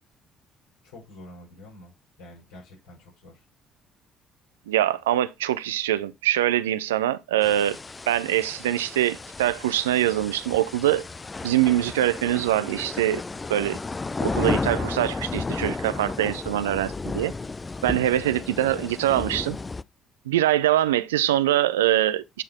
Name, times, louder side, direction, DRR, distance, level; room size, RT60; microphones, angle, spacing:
voice 1, 0.8-3.4, left 1 dB, 70° left, 5.1 m, -47 dB
voice 2, 4.7-7.8 8.1-11.0 11.4-13.2 13.5-13.8 14.2-17.3 17.8-19.6 20.3-22.4, right 13 dB, 80° right, 0.4 m, -23 dB
sound 1, 7.4-19.8, left 3 dB, 25° left, 0.4 m, -33 dB
9.1 x 4.0 x 4.2 m
figure-of-eight pair, 50°, 0 cm